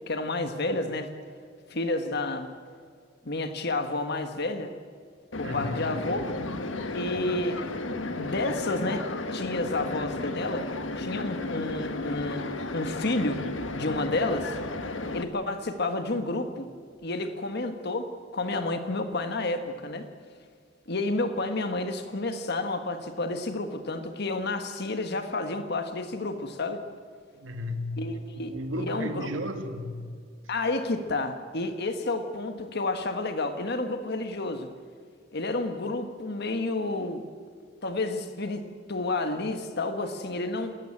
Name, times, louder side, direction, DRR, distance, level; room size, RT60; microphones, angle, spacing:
voice 1, 0.1-1.1 1.7-2.5 3.2-4.7 5.4-6.3 6.9-7.6 7.9-9.1 9.3-10.7 11.0-13.4 13.7-14.5 15.1-16.7 17.0-20.1 20.9-26.8 28.0-29.3 30.5-34.7 35.3-37.2 37.8-40.7, left 2 dB, 55° left, 8 dB, 1.5 m, -30 dB
sound 1, 5.3-15.2, left 2 dB, 75° left, 1.6 m, -33 dB
voice 2, 5.4-6.0 27.3-30.1, left 1 dB, 90° right, 7 dB, 2.3 m, -34 dB
29.0 x 14.0 x 8.9 m, 2.1 s
head